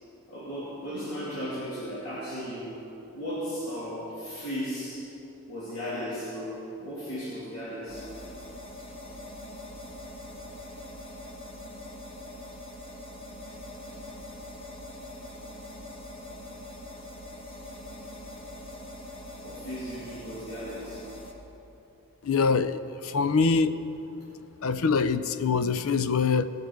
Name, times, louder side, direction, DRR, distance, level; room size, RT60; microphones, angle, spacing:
voice 1, 0.3-2.8 3.1-5.1 5.5-8.1 19.4-21.1 23.1-23.2, equal, 85° left, -9 dB, 2.7 m, -36 dB
sound 1, 7.9-21.3, left 1 dB, 25° left, 1.0 m, -43 dB
voice 2, 22.2-23.7 24.6-26.4, left 4 dB, 65° left, 12 dB, 0.5 m, -24 dB
18.5 x 6.7 x 4.6 m, 2.9 s
head